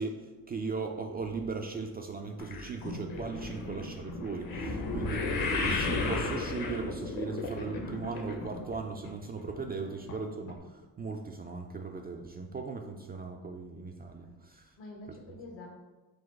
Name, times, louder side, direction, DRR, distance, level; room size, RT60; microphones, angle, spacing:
voice 1, 0.0-5.4 5.6-14.7 15.1-15.2, right 4 dB, 25° right, 3 dB, 0.3 m, -38 dB
sound 1, 2.4-8.8 9.0-9.5 10.1-10.2 10.5-10.6, left 3 dB, 50° left, 0.9 m, -34 dB
voice 2, 9.8-10.1 14.1-14.4 14.8-15.7, left 2 dB, 75° left, 0 dB, 1.2 m, -49 dB
3.9 x 2.2 x 4.4 m, 1.2 s
hypercardioid pair, 55°, 44 cm